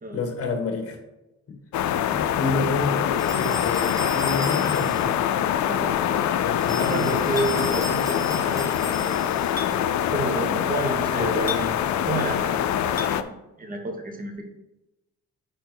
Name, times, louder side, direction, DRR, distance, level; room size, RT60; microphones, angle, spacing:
voice 1, 0.1-1.0 1.5-1.6 2.1-5.2 6.4-7.2 11.2-11.7, left 3 dB, 50° left, 3 dB, 1.7 m, -29 dB
sound 1, 1.7-13.2, left 10 dB, 70° left, 0.5 m, -24 dB
sound 2, 3.2-5.1 6.6-9.5, left 1 dB, 10° right, 1.3 m, -36 dB
voice 2, 5.6-6.1 6.8-9.2 10.1-11.7 12.0-14.5, right 2 dB, 30° right, 3 dB, 1.5 m, -30 dB
Chink clink, 7.4-7.5 9.6-9.7 11.5-11.7 13.0-13.1, left 4 dB, 30° left, 1.3 m, -32 dB
5.0 x 4.5 x 6.1 m, 0.96 s
cardioid pair, 90°, 30 cm